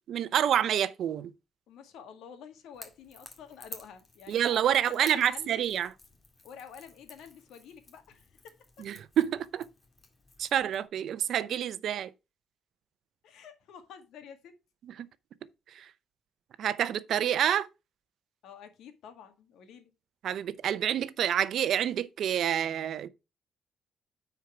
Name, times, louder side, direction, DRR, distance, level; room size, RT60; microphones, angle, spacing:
voice 1, 0.1-1.3 4.3-5.9 8.8-9.7 10.4-12.1 14.8-15.1 15.7-15.9 16.6-17.7 20.2-23.1, right 10 dB, 70° right, 0.6 m, -28 dB
voice 2, 1.7-5.6 6.4-8.6 13.2-14.5 18.4-19.9, left 7 dB, 85° left, 1.8 m, -49 dB
Crackle / Crack, 2.7-10.9, left 3 dB, 30° left, 2.1 m, -52 dB
9.6 x 4.6 x 4.6 m
cardioid pair, 90°, 0 cm